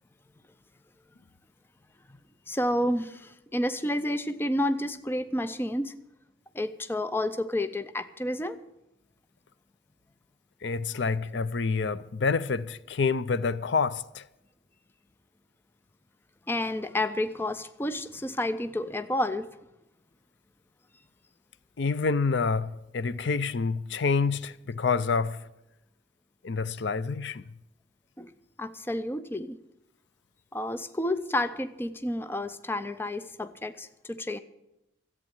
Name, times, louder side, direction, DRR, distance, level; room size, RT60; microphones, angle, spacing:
voice 1, 2.5-5.9 6.5-8.6 16.5-19.6 28.2-28.3 28.6-29.6 30.5-34.4, left 1 dB, 10° left, 0.5 m, -30 dB
voice 2, 10.6-14.2 21.8-25.4 26.4-27.4, left 4 dB, 60° left, 0.5 m, -27 dB
13.5 x 8.4 x 8.8 m
head